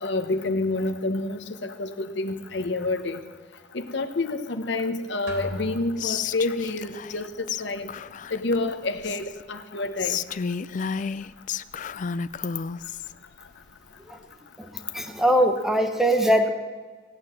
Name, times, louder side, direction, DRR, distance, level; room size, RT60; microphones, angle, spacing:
voice 1, 0.0-3.2 3.7-7.9 8.3-10.2, left 2 dB, 65° left, 8 dB, 1.1 m, -28 dB
sound 1, 5.3-6.7, equal, 70° right, 3.1 m, -38 dB
Whispering, 6.0-7.2 7.5-7.6 7.9-9.4 10.0-13.1, left 6 dB, 45° left, 0.4 m, -32 dB
voice 2, 14.9-16.5, equal, ahead, 5 dB, 1.1 m, -21 dB
17.0 x 9.5 x 7.8 m, 1.5 s
head